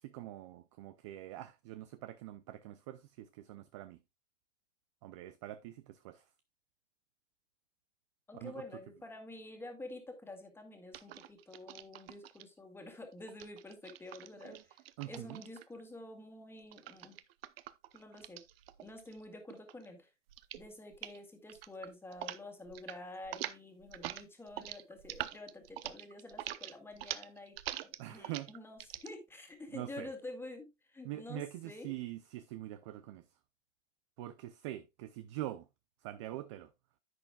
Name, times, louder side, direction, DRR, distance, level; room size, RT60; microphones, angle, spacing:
voice 1, 0.0-4.0 5.0-6.3 8.3-8.6 15.0-15.4 28.0-28.5 29.7-30.1 31.0-33.3 34.2-35.7 36.0-36.7, right 15 dB, 25° right, 0.4 m, -44 dB
voice 2, 8.3-14.8 15.1-17.2 17.9-18.4 18.8-20.1 20.6-31.9, left 2 dB, 5° left, 1.9 m, -49 dB
sound 1, 10.9-12.4 13.3-15.8 16.7-19.2 19.5-19.9 20.3-20.7 20.9-21.2 21.5-22.4 22.7-23.0 23.2-29.1, right 13 dB, 55° right, 0.8 m, -44 dB
10.5 x 8.8 x 2.3 m
hypercardioid pair, 130°, 36 cm